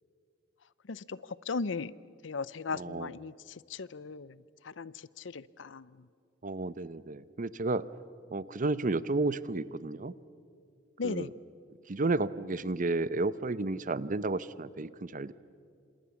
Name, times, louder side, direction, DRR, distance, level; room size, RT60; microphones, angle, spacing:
voice 1, 1.5-1.9 2.2-3.3 3.7-4.4 4.6-5.9 11.0-11.3, left 4 dB, 90° left, 19 dB, 0.7 m, -37 dB
voice 2, 2.7-3.1 6.4-7.8 8.3-10.1 11.0-11.3 11.9-15.3, right 3 dB, 45° right, 17 dB, 0.7 m, -32 dB
28.5 x 26.5 x 7.2 m, 2.3 s
head